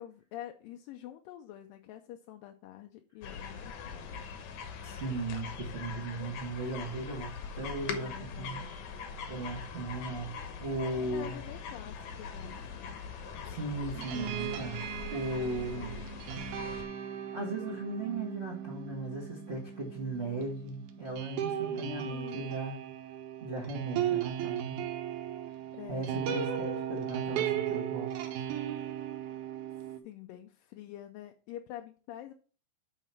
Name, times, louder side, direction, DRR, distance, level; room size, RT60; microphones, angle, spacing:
voice 1, 0.0-4.2 8.0-8.7 11.1-13.0 21.7-22.6 25.7-26.2 30.0-32.3, left 13 dB, 80° left, 5 dB, 2.2 m, -46 dB
sound 1, 3.2-16.8, left 6 dB, 65° left, 2.0 m, -42 dB
voice 2, 4.8-8.6 9.3-10.3 10.6-11.4 13.5-14.8 15.1-16.0 17.3-22.8 23.4-24.8 25.9-28.1, right 2 dB, 50° right, -2 dB, 0.7 m, -37 dB
sound 2, 13.9-30.0, right 10 dB, 70° right, 2.1 m, -36 dB
8.3 x 4.0 x 5.6 m, 0.38 s
omnidirectional pair, 4.1 m